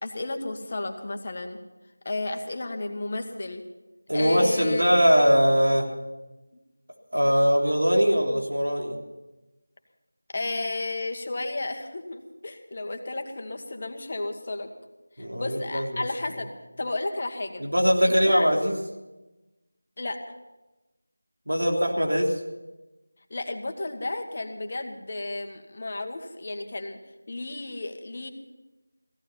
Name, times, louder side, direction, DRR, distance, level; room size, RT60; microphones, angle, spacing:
voice 1, 0.0-1.6 2.0-3.6 4.1-4.8 10.3-14.7 15.2-16.5 16.8-17.6 18.0-18.5 20.0-20.2 23.3-27.0 27.3-28.3, left 2 dB, 40° left, 5 dB, 1.4 m, -33 dB
voice 2, 4.1-5.9 7.1-9.0 15.2-16.1 17.6-18.8 21.5-22.4, equal, 80° right, 1 dB, 3.3 m, -21 dB
16.0 x 14.5 x 5.8 m, 1.1 s
figure-of-eight pair, 170°, 0 cm